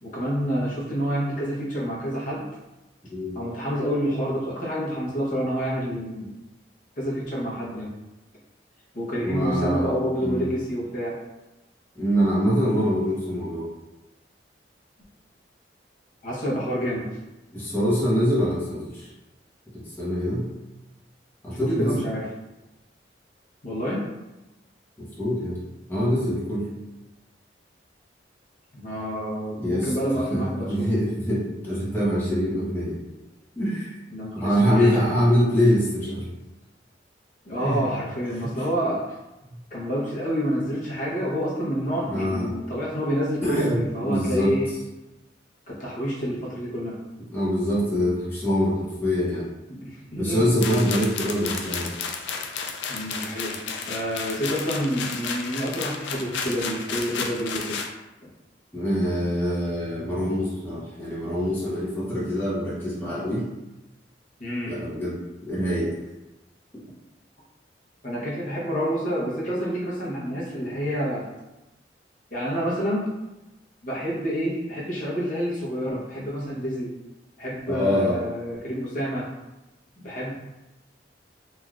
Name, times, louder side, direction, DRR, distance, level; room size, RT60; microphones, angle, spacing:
voice 1, 0.0-2.4 3.3-6.3 7.0-7.9 8.9-11.2 16.2-17.1 21.6-22.2 23.6-24.0 28.7-30.9 34.1-35.0 37.5-39.0 39.7-44.7 45.7-47.0 49.8-50.5 52.9-57.8 58.2-58.3 64.4-64.7 68.0-71.3 72.3-73.1 73.8-76.9 77.4-79.3 80.0-80.3, equal, 45° left, -6 dB, 0.9 m, -28 dB
voice 2, 9.2-9.9 10.2-10.5 11.9-13.7 17.5-19.1 19.7-20.5 21.4-22.0 25.0-25.6 25.9-26.7 29.6-29.9 30.3-33.0 33.5-33.9 34.4-36.3 37.6-37.9 38.4-38.5 39.5-39.6 42.1-42.5 43.4-44.6 47.3-49.4 50.1-51.9 58.7-63.4 64.7-65.9 77.7-78.2, equal, 10° left, -9 dB, 0.9 m, -24 dB
sound 1, 50.6-57.9, left 5 dB, 75° left, 0.4 m, -32 dB
3.2 x 2.6 x 2.4 m, 1.0 s
head